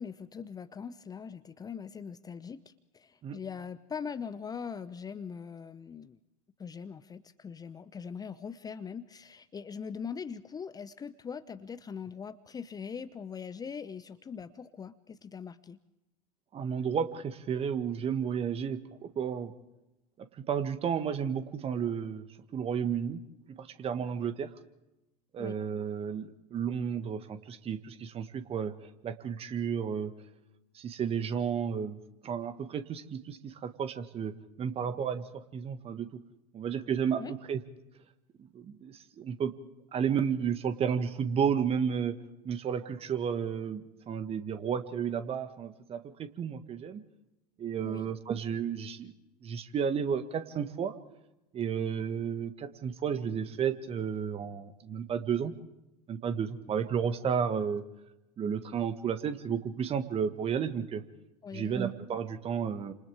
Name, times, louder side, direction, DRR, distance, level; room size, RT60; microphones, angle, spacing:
voice 1, 0.0-6.2 6.6-15.8 25.4-25.6 37.2-37.3 47.8-48.1 61.4-61.9, left 6 dB, 20° left, 13 dB, 0.8 m, -41 dB
voice 2, 16.5-18.8 19.1-19.5 20.4-22.3 22.5-23.2 23.6-24.5 25.3-28.7 29.0-30.1 30.7-32.0 32.2-34.3 34.6-35.2 35.5-36.1 36.5-37.6 38.5-39.5 39.9-42.1 42.4-47.0 47.6-49.1 49.4-50.9 51.5-55.5 56.1-57.8 58.4-61.0 61.5-62.9, right 7 dB, 30° right, 10 dB, 1.7 m, -32 dB
29.5 x 27.5 x 3.6 m, 0.95 s
figure-of-eight pair, 80°, 19 cm